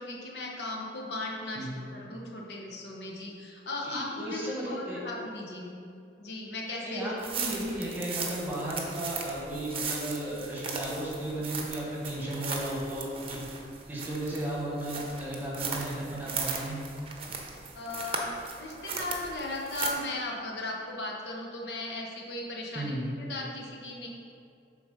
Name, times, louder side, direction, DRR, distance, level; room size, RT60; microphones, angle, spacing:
voice 1, 0.0-5.7 6.2-7.3 17.7-24.1, left 2 dB, 80° left, -2 dB, 1.0 m, -37 dB
voice 2, 3.8-5.0 6.8-13.4 13.9-16.8 22.7-23.0, right 1 dB, 10° right, -5 dB, 1.3 m, -34 dB
sound 1, 7.2-19.9, right 5 dB, 30° right, 0.7 m, -37 dB
7.2 x 3.8 x 5.3 m, 2.4 s
head